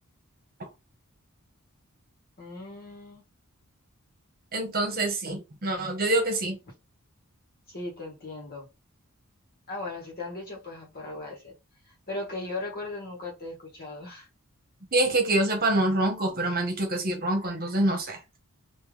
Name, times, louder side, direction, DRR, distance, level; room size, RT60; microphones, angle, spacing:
voice 1, 2.4-3.2 7.7-8.7 9.7-11.5 11.8-14.3, left 2 dB, 45° left, 1.6 m, -38 dB
voice 2, 4.5-6.6 14.9-18.2, right 1 dB, 40° right, 1.2 m, -26 dB
3.5 x 2.8 x 3.3 m
head